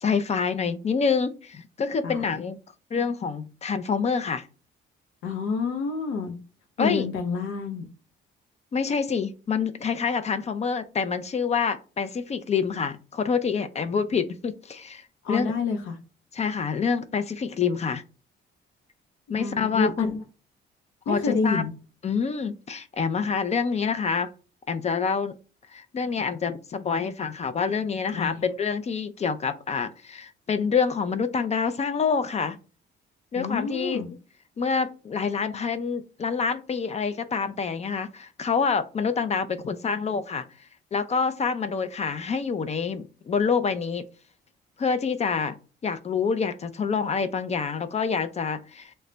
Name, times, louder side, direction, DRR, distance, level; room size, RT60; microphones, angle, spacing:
voice 1, 0.0-2.6 2.9-4.5 6.8-7.1 8.7-15.5 16.3-18.0 19.3-20.1 21.1-21.6 22.0-24.3 24.7-25.3 25.7-32.6 33.3-34.0 34.6-40.4 40.9-44.1 44.8-45.6 45.8-48.9, left 5 dB, 35° left, 0.4 m, -27 dB
voice 2, 5.2-6.3 6.8-7.9 15.2-16.0 19.3-20.2 21.1-21.7 28.1-28.4 33.3-34.1, left 4 dB, 85° left, 0.6 m, -28 dB
3.2 x 2.1 x 3.8 m
cardioid pair, 90°, 20 cm